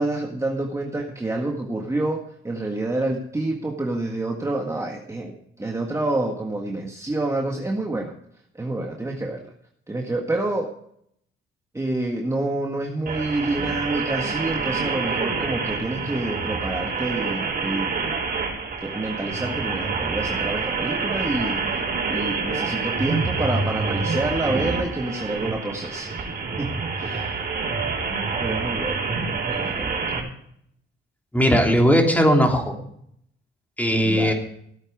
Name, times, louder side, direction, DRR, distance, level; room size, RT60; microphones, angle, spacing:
voice 1, 0.0-8.1 8.6-9.5 9.9-10.7 11.7-17.9 18.8-21.6 22.1-26.2 26.6-26.7 27.0-27.3 28.4-29.1 29.5-30.0 34.0-34.3, right 2 dB, 15° right, 1 dB, 1.7 m, -28 dB
sound 1, 13.1-30.2, right 4 dB, 50° right, 4.0 m, -27 dB
voice 2, 31.3-32.7 33.8-34.3, equal, 10° left, 2 dB, 3.2 m, -18 dB
15.5 x 8.9 x 4.8 m, 0.69 s
cardioid pair, 90°, 20 cm